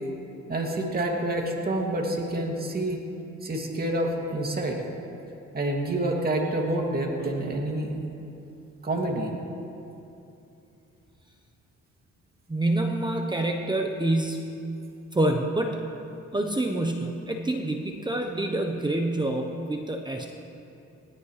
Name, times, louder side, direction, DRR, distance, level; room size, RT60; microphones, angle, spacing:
voice 1, 0.5-3.0 3.4-4.8 5.5-7.9 8.8-9.3, right 1 dB, 30° right, 0 dB, 2.6 m, -28 dB
voice 2, 12.5-14.5 15.1-15.8 16.3-20.3, right 1 dB, 15° right, 3 dB, 1.0 m, -27 dB
21.0 x 16.5 x 3.3 m, 2.8 s
cardioid pair, 90°, 30 cm